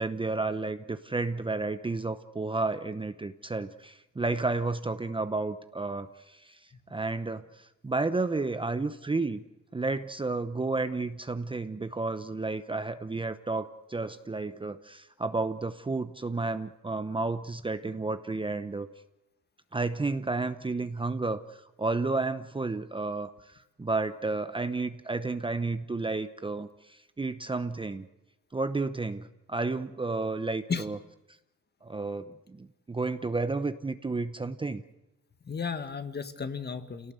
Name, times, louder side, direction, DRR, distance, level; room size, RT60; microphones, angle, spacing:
voice 1, 0.0-6.6 6.9-9.4 9.7-18.9 19.7-28.1 28.5-31.0 31.8-34.8, right 3 dB, 15° right, 10 dB, 0.8 m, -32 dB
voice 2, 35.4-37.1, left 5 dB, 35° left, 9 dB, 1.7 m, -34 dB
27.0 x 18.0 x 8.1 m, 1.0 s
cardioid pair, 90°, 30 cm